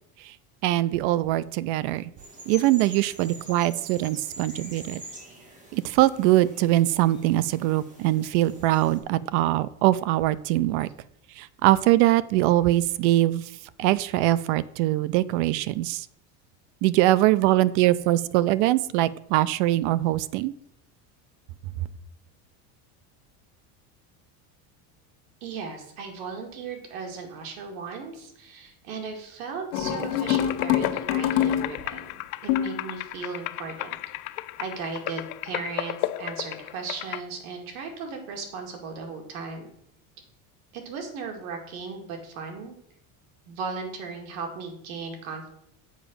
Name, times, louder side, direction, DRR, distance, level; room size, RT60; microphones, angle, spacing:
voice 1, 0.6-2.1 2.5-5.0 5.7-10.9 11.4-13.5 13.8-16.1 16.8-20.5, right 16 dB, 60° right, 18 dB, 0.5 m, -22 dB
sound 1, 2.2-9.0, right 1 dB, 20° right, 1.6 m, -45 dB
voice 2, 25.4-34.0 34.6-39.7 40.7-42.8 43.5-45.5, right 5 dB, 85° right, 3 dB, 2.4 m, -36 dB
sound 2, 29.7-32.0 32.5-32.9, left 10 dB, 70° left, 1.3 m, -25 dB
sound 3, 30.0-37.2, left 17 dB, 90° left, 0.6 m, -34 dB
7.3 x 4.9 x 7.1 m, 0.72 s
cardioid pair, 170°, 41 cm